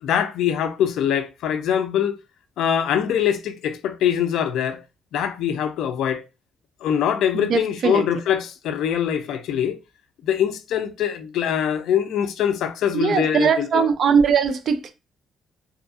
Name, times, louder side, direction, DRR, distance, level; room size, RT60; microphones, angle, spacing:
voice 1, 0.0-2.2 2.6-4.8 5.1-6.2 6.8-9.8 10.2-13.9, left 9 dB, 80° left, 0.3 m, -23 dB
voice 2, 7.3-8.0 12.9-14.9, right 6 dB, 60° right, 0.4 m, -20 dB
2.6 x 2.4 x 2.5 m
cardioid pair, 90°, 0 cm